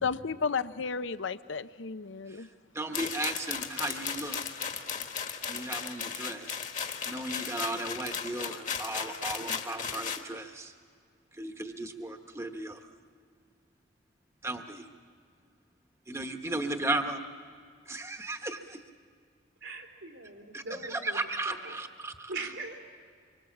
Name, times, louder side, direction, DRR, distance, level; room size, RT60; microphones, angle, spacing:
voice 1, 0.0-2.5, left 5 dB, 75° left, 13 dB, 0.7 m, -33 dB
voice 2, 2.7-4.4 5.5-6.6 7.1-10.7 11.4-12.8 14.4-14.8 16.1-17.2 17.9-18.8 20.5-20.6 20.9-22.3, right 2 dB, 15° right, 5 dB, 1.1 m, -35 dB
sound 1, 2.9-10.2, left 7 dB, 40° left, 1.5 m, -36 dB
voice 3, 19.6-21.8 22.3-22.8, right 3 dB, 90° right, 2 dB, 3.4 m, -41 dB
25.5 x 24.5 x 7.3 m, 2.1 s
head